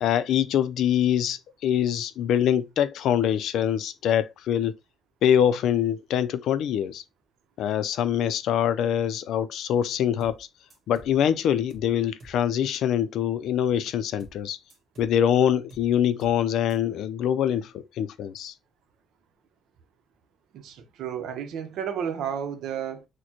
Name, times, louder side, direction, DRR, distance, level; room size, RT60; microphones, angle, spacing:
voice 1, 0.0-4.7 5.2-7.0 7.6-10.5 10.9-14.6 15.0-18.5, left 9 dB, 75° left, 0.4 m, -24 dB
sound 1, 10.2-10.4 10.7-11.2 11.7-11.9 12.2-12.4 14.2-14.4 14.7-15.2 15.7-15.9 16.2-16.4 16.7-16.8, right 2 dB, 40° right, 1.5 m, -48 dB
voice 2, 20.5-23.0, right 8 dB, 85° right, 0.7 m, -32 dB
6.4 x 2.2 x 2.9 m
cardioid pair, 160°, 0 cm